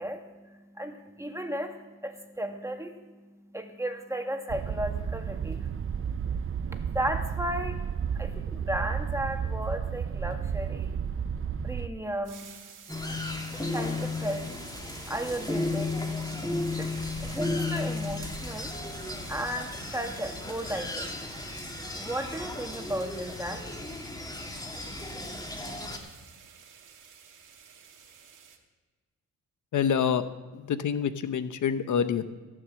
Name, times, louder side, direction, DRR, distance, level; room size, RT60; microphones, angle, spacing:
voice 1, 0.0-6.1 6.7-7.8 8.1-10.9 11.6-12.5 13.7-14.5 15.1-16.0 16.8-17.0 17.2-18.7 19.3-21.1 21.9-23.6, right 1 dB, 10° right, 4 dB, 2.0 m, -35 dB
sound 1, 4.5-11.9, right 7 dB, 40° right, 0.6 m, -32 dB
sound 2, 12.2-28.6, right 7 dB, 75° right, 2.0 m, -52 dB
sound 3, 12.9-26.0, left 2 dB, 10° left, 2.6 m, -34 dB
voice 2, 29.7-30.2 30.5-32.2, left 7 dB, 65° left, 11 dB, 0.9 m, -27 dB
16.0 x 6.4 x 7.7 m, 1.3 s
cardioid pair, 75°, 32 cm